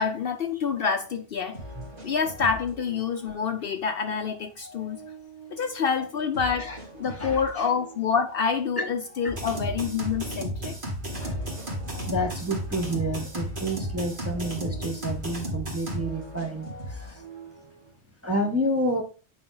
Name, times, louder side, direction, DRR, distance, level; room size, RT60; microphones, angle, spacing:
voice 1, 0.0-1.6 2.0-5.0 5.5-6.7 7.0-10.8, left 6 dB, 60° left, 0.8 m, -27 dB
sound 1, 0.9-1.0 1.5-3.6 3.9-5.8 6.3-8.3 8.8-10.5 11.1-13.3 13.6-15.3 15.9-17.9, right 1 dB, 80° right, 2.7 m, -43 dB
voice 2, 7.0-7.7 8.8-8.9 11.2-11.4 12.1-17.2 18.2-19.0, equal, 15° right, 0.8 m, -30 dB
sound 2, 9.3-16.0, equal, 50° right, 2.3 m, -33 dB
8.7 x 5.3 x 3.8 m
omnidirectional pair, 1.2 m